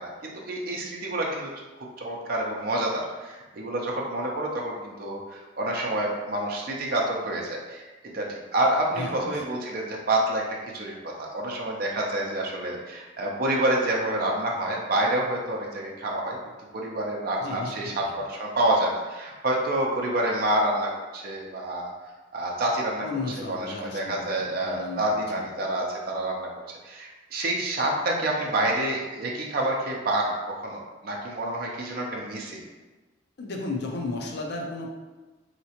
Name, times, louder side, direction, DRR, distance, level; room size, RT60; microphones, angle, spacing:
voice 1, 0.0-1.5 2.0-7.8 8.1-10.5 10.7-16.4 16.7-21.9 22.3-23.1 23.5-26.5 26.8-32.6, right 1 dB, 55° right, -1 dB, 0.5 m, -28 dB
voice 2, 9.0-9.4 17.4-18.1 23.0-24.3 24.6-25.1 25.3-25.5 33.4-34.9, left 3 dB, 60° left, 1 dB, 0.5 m, -34 dB
3.2 x 2.8 x 2.8 m, 1.2 s
head